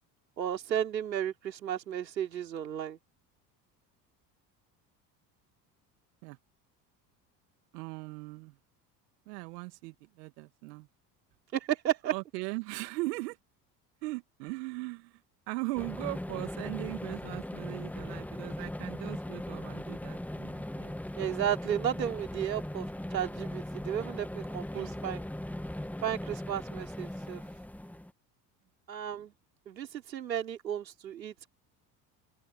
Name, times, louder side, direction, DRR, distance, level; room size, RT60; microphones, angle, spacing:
voice 1, 0.4-3.0 11.5-12.1 21.1-22.9 23.1-25.2 26.0-27.4 28.9-29.3 29.7-31.5, right 10 dB, 85° right, 3.8 m, -33 dB
voice 2, 7.7-8.6 9.3-10.9 12.1-13.4 14.0-15.2 15.5-20.9 24.7-25.0, right 24 dB, 70° right, 2.6 m, -39 dB
sound 1, 15.8-28.1, left 1 dB, 5° left, 1.6 m, -39 dB
open air
hypercardioid pair, 65°, 50 cm